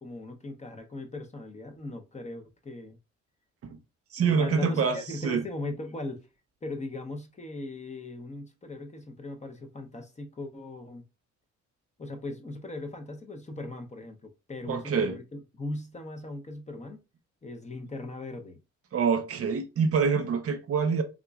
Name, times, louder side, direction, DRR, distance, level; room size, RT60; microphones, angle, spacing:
voice 1, 0.0-3.0 4.2-6.3 6.6-11.0 12.0-17.0 17.4-18.6, left 2 dB, 25° left, 0.7 m, -39 dB
voice 2, 4.1-5.4 14.7-15.1 18.9-21.0, right 5 dB, 50° right, 0.6 m, -26 dB
3.6 x 2.9 x 2.3 m
cardioid pair, 90°, 30 cm